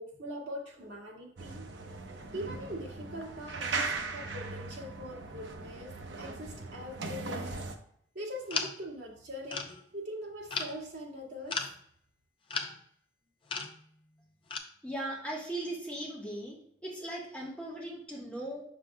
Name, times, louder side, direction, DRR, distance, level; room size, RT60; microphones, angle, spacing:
voice 1, 0.0-1.7 2.0-5.9 6.2-7.6 8.1-11.6, equal, 70° right, -5 dB, 2.1 m, -42 dB
sound 1, 1.4-7.8, right 3 dB, 90° right, 0.7 m, -39 dB
sound 2, 8.5-8.9 9.5-9.8 10.5-10.8 11.5-11.7 12.5-12.8 13.5-13.8 14.5-14.6, left 4 dB, 30° left, 0.6 m, -35 dB
voice 2, 14.8-16.6 16.8-18.6, right 1 dB, 5° left, -4 dB, 1.2 m, -38 dB
7.2 x 6.0 x 2.2 m, 0.66 s
head